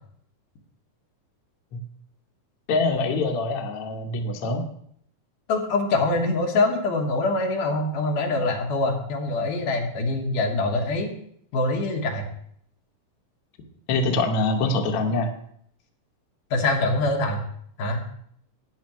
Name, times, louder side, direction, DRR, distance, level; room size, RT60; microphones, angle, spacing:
voice 1, 2.7-4.6 13.9-15.3, left 3 dB, 60° left, 2 dB, 1.7 m, -24 dB
voice 2, 5.5-11.1 11.5-12.3 16.5-17.4 17.8-18.0, left 2 dB, 85° left, 1 dB, 2.9 m, -24 dB
12.5 x 9.9 x 3.1 m, 0.67 s
omnidirectional pair, 3.6 m